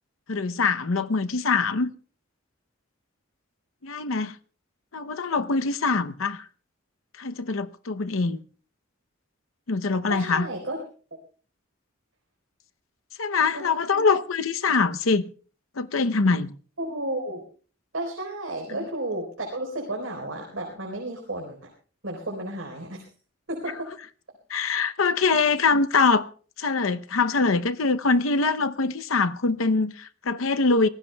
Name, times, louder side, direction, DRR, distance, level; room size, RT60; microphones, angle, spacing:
voice 1, 0.3-1.9 3.8-4.4 4.9-6.4 7.2-8.4 9.7-10.5 13.2-15.3 15.8-16.5 24.5-26.3 26.6-30.9, left 4 dB, 75° left, 0.8 m, -23 dB
voice 2, 10.1-10.8 13.5-14.0 16.8-17.4 17.9-21.6 22.0-23.0 23.5-23.9, right 1 dB, 70° right, 4.1 m, -32 dB
25.0 x 18.5 x 2.3 m
head